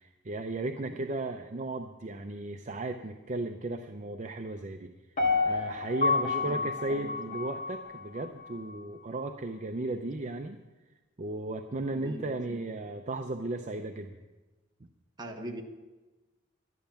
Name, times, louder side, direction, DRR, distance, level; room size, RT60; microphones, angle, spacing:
voice 1, 0.0-4.9 5.4-10.6 11.2-14.2, right 2 dB, 35° right, 6 dB, 0.6 m, -35 dB
Piano, 5.2-8.2 8.7-8.8, left 4 dB, 40° left, 2.0 m, -29 dB
voice 2, 6.2-7.4 11.9-12.8 15.2-15.6, equal, 20° right, 2 dB, 1.2 m, -42 dB
11.5 x 11.0 x 7.0 m, 1.2 s
head